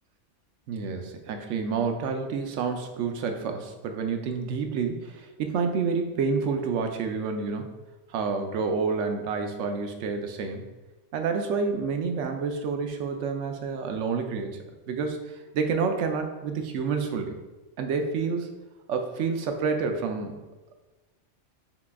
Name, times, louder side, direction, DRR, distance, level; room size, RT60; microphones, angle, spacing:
voice 1, 0.7-7.8 8.1-10.6 11.1-14.6 14.9-17.4 17.8-18.5 18.9-20.4, right 5 dB, 80° right, 5 dB, 0.9 m, -29 dB
5.8 x 2.3 x 3.5 m, 1.2 s
omnidirectional pair, 1.2 m